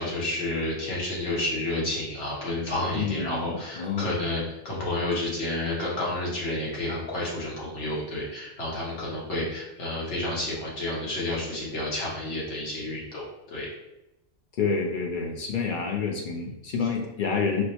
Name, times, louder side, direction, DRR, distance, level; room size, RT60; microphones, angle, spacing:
voice 1, 0.0-13.7, left 1 dB, 80° left, -5 dB, 1.4 m, -30 dB
voice 2, 2.9-4.1 14.6-17.6, left 5 dB, 60° left, 1 dB, 0.6 m, -28 dB
4.5 x 2.0 x 2.8 m, 0.90 s
omnidirectional pair, 1.2 m